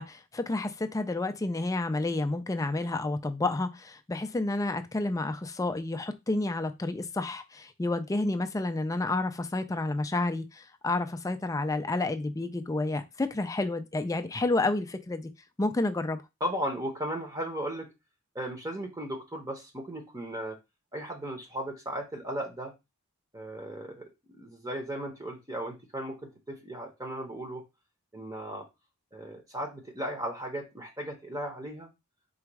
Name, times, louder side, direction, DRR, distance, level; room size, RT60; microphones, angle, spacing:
voice 1, 0.0-15.3 15.6-16.2, left 2 dB, 15° left, 0.3 m, -30 dB
voice 2, 16.4-17.9 18.3-20.6 20.9-22.7 23.3-27.6 28.1-28.6 29.1-31.9, equal, 15° right, 0.8 m, -36 dB
3.9 x 2.3 x 4.6 m
head